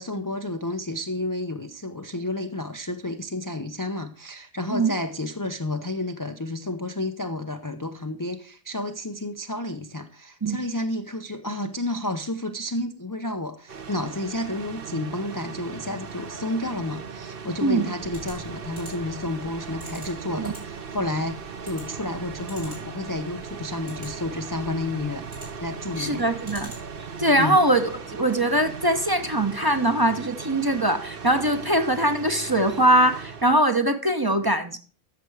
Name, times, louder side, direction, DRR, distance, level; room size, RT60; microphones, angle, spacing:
voice 1, 0.0-25.3 25.6-26.2 27.4-27.6, left 1 dB, 25° left, 0.5 m, -31 dB
sound 1, 13.7-33.6, right 6 dB, 50° right, 1.0 m, -38 dB
sound 2, 18.0-27.1, right 1 dB, 85° right, 5.8 m, -46 dB
voice 2, 26.0-26.7 27.2-34.8, right 1 dB, 20° right, 0.8 m, -22 dB
13.5 x 6.9 x 4.8 m
omnidirectional pair, 1.4 m